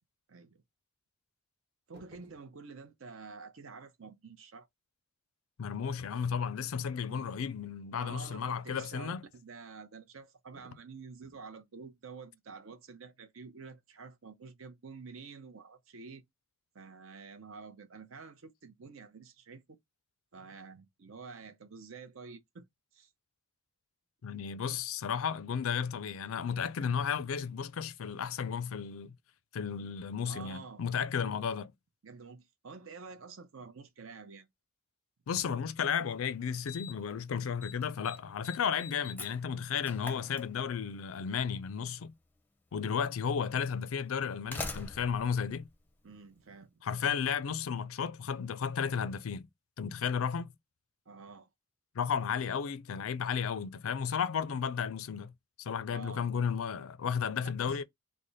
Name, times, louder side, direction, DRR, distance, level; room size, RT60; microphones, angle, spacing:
voice 1, 0.3-0.6 1.9-4.7 6.9-7.3 8.0-16.2 16.7-19.8 20.3-22.7 22.9-23.1 30.2-30.8 32.0-34.5 46.0-46.8 51.1-51.5 55.9-56.2 57.7-57.8, right 4 dB, 70° right, 0.6 m, -49 dB
sound 1, 1.9-2.5 8.1-8.6 10.5-10.9 11.2-11.5, right 2 dB, 50° right, 1.0 m, -57 dB
voice 2, 5.6-9.2 24.2-29.1 29.5-31.7 35.3-42.1 42.7-45.7 46.8-49.5 49.8-50.5 51.9-55.3 55.6-57.8, left 7 dB, 75° left, 0.4 m, -33 dB
Slam, 35.8-35.9 36.7-37.1 37.4-37.7 38.0-41.0 42.1-42.2 43.1-43.2 44.1-46.5, left 3 dB, 10° left, 0.5 m, -44 dB
3.3 x 2.1 x 3.9 m
head